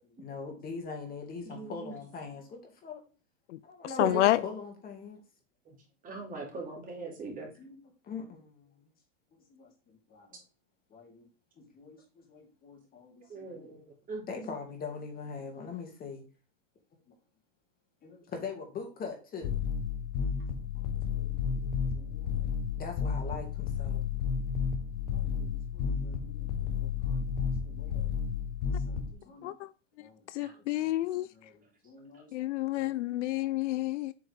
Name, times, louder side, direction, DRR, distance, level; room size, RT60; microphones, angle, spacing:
voice 1, 0.0-3.0 3.6-5.2 6.1-6.6 7.6-7.8 8.0-8.8 9.3-10.4 10.9-11.3 11.6-13.8 14.3-16.2 18.0-19.6 20.7-22.5 22.8-24.0 25.1-28.1 28.7-29.5 30.0-32.3 32.7-33.6, left 5 dB, 25° left, 2.0 m, -44 dB
voice 2, 1.4-1.9 4.0-4.2 5.7-5.8 6.0-7.5 13.3-14.5 29.1-29.3 30.4-30.6, right 4 dB, 20° right, 2.3 m, -41 dB
voice 3, 4.0-4.4 29.4-29.7 30.3-31.3 32.3-34.1, left 15 dB, 70° left, 0.5 m, -29 dB
sound 1, 19.4-29.1, left 6 dB, 50° left, 1.0 m, -32 dB
8.0 x 4.5 x 3.4 m
supercardioid pair, 145°, 37 cm